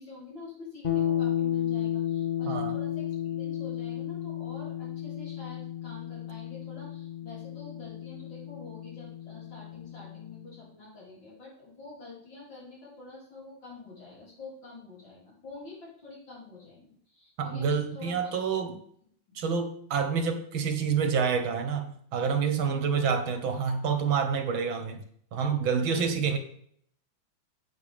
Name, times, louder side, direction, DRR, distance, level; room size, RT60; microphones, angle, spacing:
voice 1, 0.0-18.3 19.3-19.4 22.7-22.9 25.8-26.1, left 3 dB, 65° left, -7 dB, 5.8 m, -47 dB
sound 1, 0.8-10.6, left 11 dB, 35° left, 1.2 m, -33 dB
voice 2, 17.4-18.8 19.4-25.0 25.3-26.4, right 6 dB, 80° right, 7 dB, 2.0 m, -28 dB
10.5 x 8.4 x 3.6 m, 0.63 s
omnidirectional pair, 2.2 m